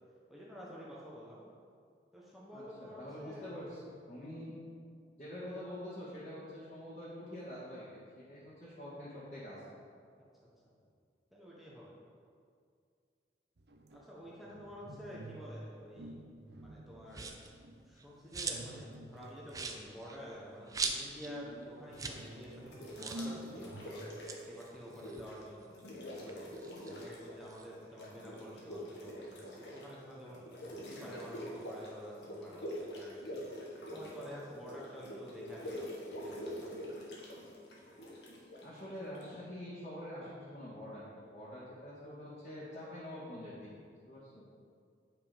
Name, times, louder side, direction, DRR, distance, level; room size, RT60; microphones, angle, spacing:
voice 1, 0.3-1.4 2.1-3.5 10.5-10.6 11.3-12.0 13.9-16.1 16.6-17.3 17.9-24.0 24.4-25.8 26.2-26.5 26.8-33.3 33.9-35.9 36.2-36.7, equal, ahead, -7 dB, 1.1 m, -49 dB
voice 2, 2.5-4.6 5.2-8.0 8.3-9.6 38.6-43.7 44.1-44.4, left 1 dB, 45° left, -12 dB, 2.0 m, -46 dB
sound 1, 13.6-15.6 16.0-17.9 18.4-19.5 21.2-24.2, right 1 dB, 75° right, 0.7 m, -48 dB
sound 2, 17.1-17.5 18.0-18.8 19.1-19.2 19.5-21.3 21.6-21.7 21.9-22.2 22.5-22.6 23.0-23.3 24.1-25.8 26.2-27.7, right 4 dB, 20° right, 0.5 m, -41 dB
sound 3, 21.9-22.3 22.7-25.4 25.7-27.5 27.7-39.2, equal, 80° left, 1.6 m, -45 dB
9.3 x 5.6 x 5.1 m, 2.2 s
head